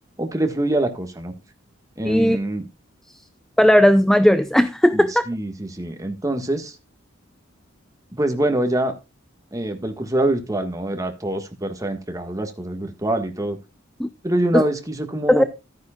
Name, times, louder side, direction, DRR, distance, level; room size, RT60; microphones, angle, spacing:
voice 1, 0.2-1.3 2.0-2.7 4.9-6.8 8.1-8.9 9.5-13.6 14.2-15.4, right 1 dB, 15° right, 1.5 m, -24 dB
voice 2, 2.1-2.4 3.6-5.2 14.0-14.1 14.5-14.6 15.3-15.4, equal, ahead, 0.4 m, -16 dB
13.5 x 9.4 x 2.3 m
head